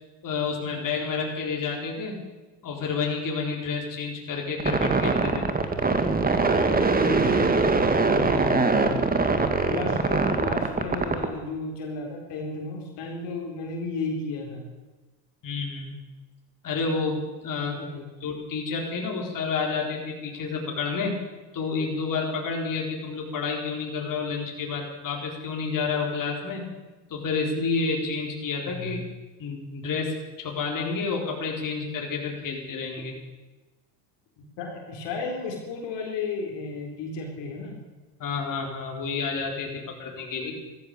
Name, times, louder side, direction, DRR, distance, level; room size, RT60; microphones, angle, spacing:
voice 1, 0.2-2.1 2.6-5.5 15.4-16.0 16.6-17.8 18.2-21.2 21.5-26.7 27.1-29.0 29.4-33.1 38.2-40.5, left 4 dB, 40° left, 0 dB, 4.2 m, -29 dB
sound 1, 4.6-11.3, right 3 dB, 20° right, 2.0 m, -22 dB
voice 2, 7.0-7.5 8.0-9.1 9.7-14.6 17.7-18.0 28.7-29.0 34.6-37.8 39.7-39.8 40.4-40.5, left 3 dB, 60° left, 1 dB, 4.1 m, -33 dB
14.5 x 14.5 x 6.8 m, 1.2 s
hypercardioid pair, 85°, 49 cm